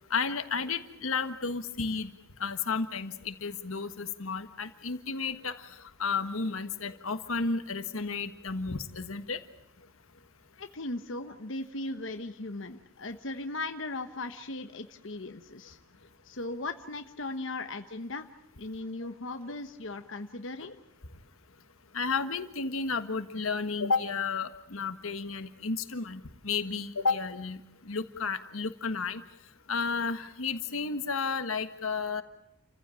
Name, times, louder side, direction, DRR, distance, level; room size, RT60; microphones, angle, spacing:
voice 1, 0.1-2.1 2.4-9.4 20.6-20.7 21.9-29.2 29.7-32.2, left 4 dB, 90° left, 9 dB, 1.5 m, -32 dB
voice 2, 10.5-15.8 16.2-18.3 18.6-20.7, left 2 dB, 65° left, 6 dB, 1.2 m, -38 dB
29.0 x 15.5 x 9.0 m, 0.81 s
head